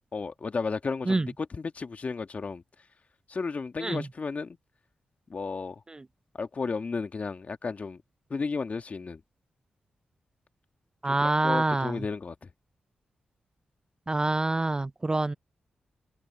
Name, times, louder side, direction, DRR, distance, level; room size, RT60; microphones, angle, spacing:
voice 1, 0.1-2.6 3.3-4.6 5.3-5.8 6.3-8.0 8.3-9.2 11.0-12.4, left 4 dB, 50° left, 1.9 m, -33 dB
voice 2, 11.0-12.0 14.1-15.3, right 2 dB, 25° right, 0.4 m, -26 dB
cardioid pair, 50°, 3 cm